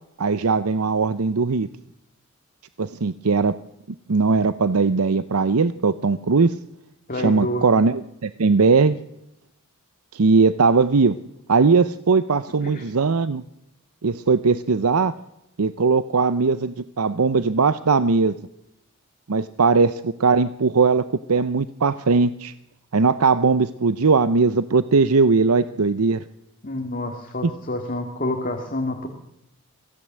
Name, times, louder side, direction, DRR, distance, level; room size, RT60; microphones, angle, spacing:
voice 1, 0.2-1.7 2.8-3.5 4.1-6.6 7.1-9.0 10.1-11.2 11.5-13.4 14.0-15.1 15.6-18.3 19.3-22.5 22.9-26.2, right 4 dB, 85° right, 13 dB, 0.7 m, -19 dB
voice 2, 7.1-7.6 12.6-12.8 26.6-29.1, left 1 dB, 40° left, 3 dB, 2.5 m, -28 dB
24.0 x 15.5 x 7.6 m, 0.87 s
head